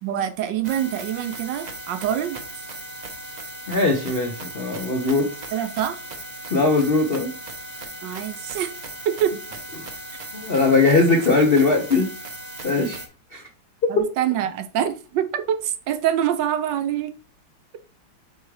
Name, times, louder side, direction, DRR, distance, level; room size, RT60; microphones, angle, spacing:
voice 1, 0.0-2.4 5.5-6.0 8.0-8.8 9.0-9.4 13.9-17.1, right 10 dB, 75° right, 1.2 m, -25 dB
sound 1, 0.6-13.1, right 1 dB, 45° right, 0.5 m, -37 dB
voice 2, 3.7-5.3 6.5-7.3 10.3-12.1 12.6-13.0 13.3-13.4 13.8-14.1, left 3 dB, 60° left, 0.6 m, -20 dB
8.1 x 3.6 x 3.2 m
omnidirectional pair, 2.2 m